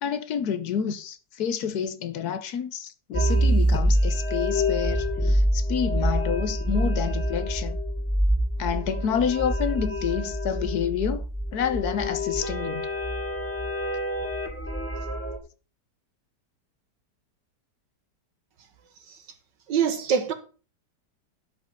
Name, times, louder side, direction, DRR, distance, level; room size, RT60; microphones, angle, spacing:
voice 1, 0.0-7.8 8.6-11.2 11.5-12.9, left 8 dB, 65° left, 1.3 m, -29 dB
sound 1, 3.1-15.4, equal, 10° left, 1.4 m, -26 dB
voice 2, 19.7-20.3, right 7 dB, 85° right, 2.1 m, -23 dB
11.5 x 5.3 x 5.4 m
omnidirectional pair, 1.9 m